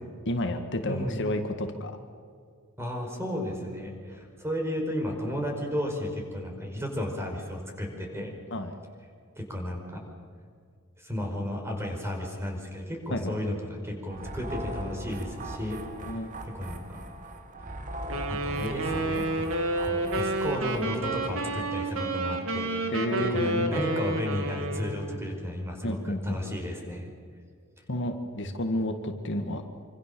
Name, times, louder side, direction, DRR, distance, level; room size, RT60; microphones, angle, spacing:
voice 1, 0.3-1.9 8.5-8.8 13.1-13.3 16.1-16.3 22.9-23.7 25.8-26.6 27.9-29.6, left 1 dB, 60° left, 6 dB, 1.9 m, -30 dB
voice 2, 0.8-1.2 2.8-8.3 9.4-10.0 11.0-15.8 16.1-17.0 18.3-19.4 19.8-27.1, left 1 dB, 10° right, 2 dB, 5.3 m, -34 dB
sound 1, 14.1-21.0, right 1 dB, 40° right, 2.2 m, -39 dB
Wind instrument woodwind instrument, 18.1-25.1, right 2 dB, 70° right, 3.0 m, -30 dB
26.0 x 26.0 x 7.0 m, 2.2 s
head